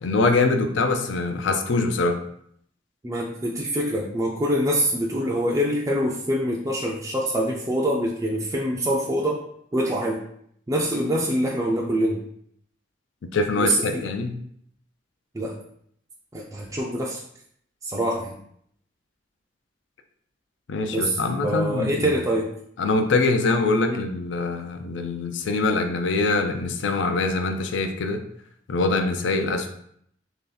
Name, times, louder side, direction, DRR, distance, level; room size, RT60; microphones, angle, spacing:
voice 1, 0.0-2.2 13.3-14.4 20.7-22.2 22.8-28.2 28.7-29.7, left 3 dB, 70° left, 6 dB, 0.5 m, -24 dB
voice 2, 3.0-9.4 9.7-10.2 10.7-12.2 13.6-14.1 15.3-15.6 16.3-17.2 17.8-18.4 20.9-22.5 23.9-24.0, equal, 20° right, -3 dB, 0.4 m, -25 dB
3.4 x 2.8 x 3.8 m, 0.67 s
head